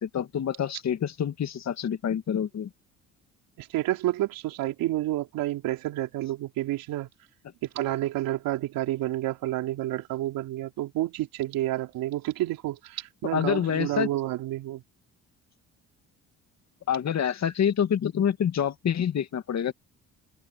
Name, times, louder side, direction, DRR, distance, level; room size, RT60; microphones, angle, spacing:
voice 1, 0.0-2.7 13.3-14.1 16.9-19.7, left 8 dB, 50° left, 2.2 m, -27 dB
voice 2, 3.6-7.1 7.6-14.8, right 15 dB, 75° right, 3.7 m, -29 dB
supercardioid pair, 70°, 34 cm